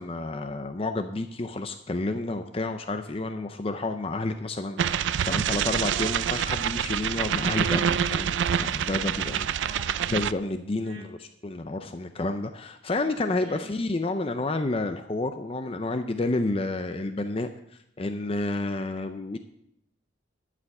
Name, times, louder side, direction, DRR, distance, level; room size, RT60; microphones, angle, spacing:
voice 1, 0.0-9.5 10.1-17.5 18.0-19.4, left 2 dB, 30° left, 7 dB, 0.5 m, -30 dB
sound 1, 4.8-10.3, right 8 dB, 70° right, 0.4 m, -26 dB
voice 2, 9.1-9.9 10.8-11.1 13.4-13.7, right 1 dB, 35° right, -4 dB, 4.5 m, -45 dB
12.0 x 5.0 x 7.8 m, 0.76 s
head